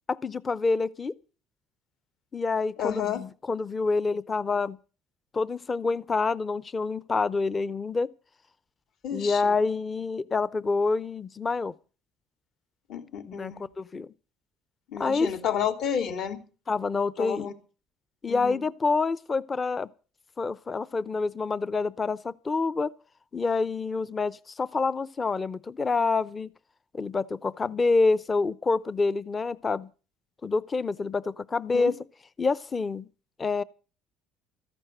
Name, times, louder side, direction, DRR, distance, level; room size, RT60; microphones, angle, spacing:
voice 1, 0.1-1.1 2.3-4.8 5.3-8.1 9.1-11.7 13.3-14.1 15.0-15.3 16.7-17.5 18.2-19.9 20.4-22.9 23.3-26.5 26.9-29.9 30.4-31.9 32.4-33.1 33.4-33.6, left 4 dB, 25° left, 0.7 m, -27 dB
voice 2, 2.8-3.2 9.0-9.6 12.9-13.6 14.9-16.4 17.2-17.5 18.3-18.6 31.7-31.9, left 8 dB, 60° left, 3.2 m, -31 dB
14.0 x 11.0 x 7.9 m
cardioid pair, 115°, 0 cm